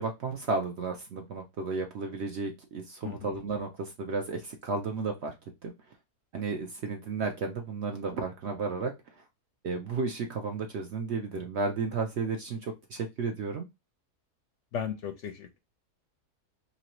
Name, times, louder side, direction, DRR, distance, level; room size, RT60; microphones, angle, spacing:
voice 1, 0.0-5.3 5.6-5.7 6.3-8.9 9.6-13.7, right 4 dB, 65° right, 3 dB, 0.7 m, -33 dB
voice 2, 3.0-3.4 14.7-15.6, left 7 dB, 65° left, 8 dB, 0.7 m, -36 dB
3.0 x 2.7 x 2.8 m, 0.22 s
omnidirectional pair, 1.6 m